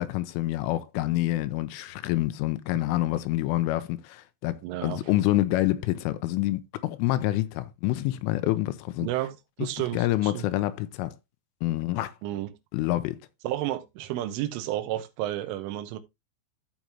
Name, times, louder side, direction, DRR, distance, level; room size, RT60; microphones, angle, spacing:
voice 1, 0.0-9.1 9.6-9.7 9.9-11.1 11.6-12.1 12.7-13.2, left 16 dB, 85° left, 3.1 m, -27 dB
voice 2, 4.6-5.0 9.0-10.4 12.2-12.6 13.4-16.0, right 14 dB, 80° right, 3.4 m, -31 dB
14.0 x 5.2 x 2.9 m
omnidirectional pair, 5.9 m